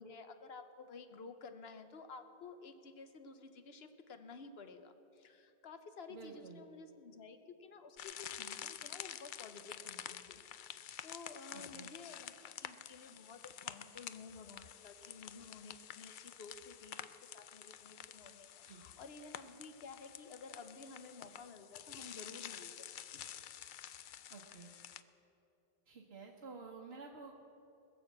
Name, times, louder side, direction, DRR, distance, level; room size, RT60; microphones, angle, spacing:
voice 1, 0.0-23.2, left 4 dB, 80° left, 8 dB, 1.2 m, -53 dB
voice 2, 6.1-6.6 11.5-11.9 18.6-18.8 24.3-24.7 25.9-27.4, right 4 dB, 75° right, 0 dB, 1.3 m, -51 dB
sound 1, 8.0-25.0, left 10 dB, 60° left, 0.6 m, -49 dB
21.0 x 7.1 x 7.3 m, 3.0 s
omnidirectional pair, 1.0 m